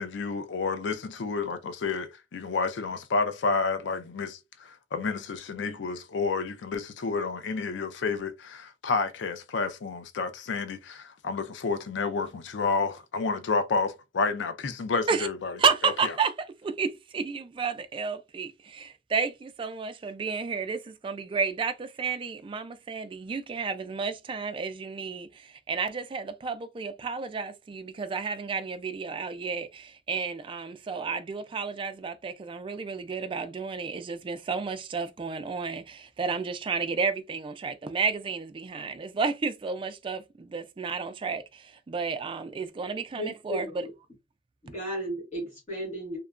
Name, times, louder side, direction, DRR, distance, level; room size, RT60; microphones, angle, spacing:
voice 1, 0.0-15.5 15.8-15.9, left 4 dB, 80° left, 0.4 m, -30 dB
voice 2, 15.6-43.9, right 5 dB, 30° right, 0.3 m, -31 dB
voice 3, 43.1-43.9 44.6-46.2, equal, 40° left, 1.1 m, -35 dB
2.8 x 2.2 x 2.4 m
head